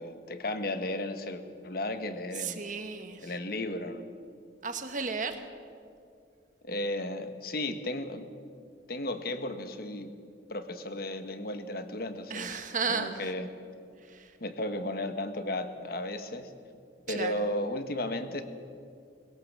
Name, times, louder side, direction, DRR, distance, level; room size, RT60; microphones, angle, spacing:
voice 1, 0.0-2.6 3.2-4.1 6.6-8.3 8.9-10.1 10.5-12.6 12.9-13.5 14.4-16.5 17.1-18.4, left 1 dB, 55° left, 9 dB, 1.4 m, -34 dB
voice 2, 2.3-3.3 4.6-5.5 12.3-13.2 14.0-14.3 17.1-17.3, right 5 dB, 45° right, 7 dB, 1.6 m, -34 dB
21.5 x 17.0 x 7.4 m, 2.3 s
head